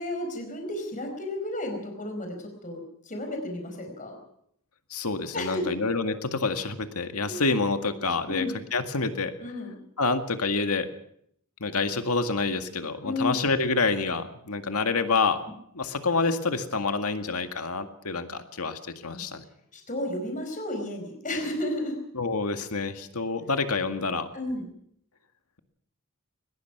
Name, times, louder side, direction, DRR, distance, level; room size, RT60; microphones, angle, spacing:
voice 1, 0.0-4.2 5.3-5.8 7.2-7.4 8.3-8.6 9.4-9.8 13.0-13.4 19.1-19.2 19.7-22.0 24.3-24.7, left 1 dB, 35° left, 4 dB, 4.8 m, -32 dB
voice 2, 4.9-9.3 10.0-10.9 11.6-15.4 15.7-19.4 22.1-24.3, left 4 dB, 80° left, 7 dB, 1.9 m, -27 dB
22.0 x 20.5 x 6.0 m, 0.70 s
head